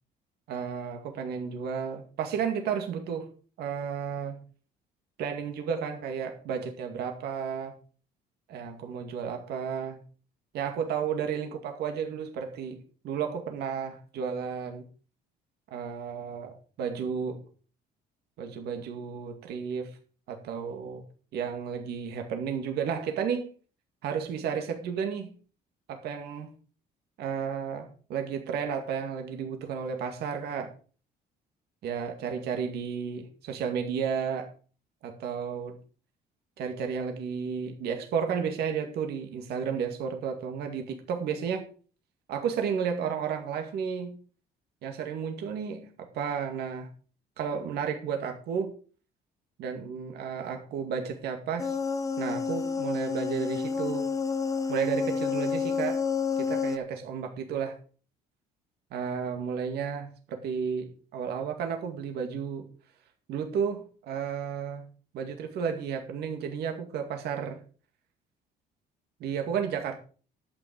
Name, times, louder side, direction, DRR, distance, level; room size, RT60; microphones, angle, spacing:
voice 1, 0.5-3.3 3.6-4.4 5.2-7.8 8.5-10.0 10.5-14.8 15.7-17.4 18.4-20.0 20.3-21.0 21.3-23.5 24.0-25.3 25.9-26.5 27.2-30.7 31.8-34.5 35.0-35.8 36.6-41.7 42.3-44.2 44.8-46.9 47.4-48.7 49.6-51.8 52.2-54.1 54.7-56.0 56.4-57.8 58.9-62.7 63.3-64.9 65.1-67.6 69.2-70.0, right 7 dB, 75° right, 4 dB, 2.1 m, -32 dB
sound 1, 51.6-56.8, left 5 dB, 20° left, 1.0 m, -29 dB
11.0 x 8.8 x 5.2 m, 0.39 s
cardioid pair, 110°, 17 cm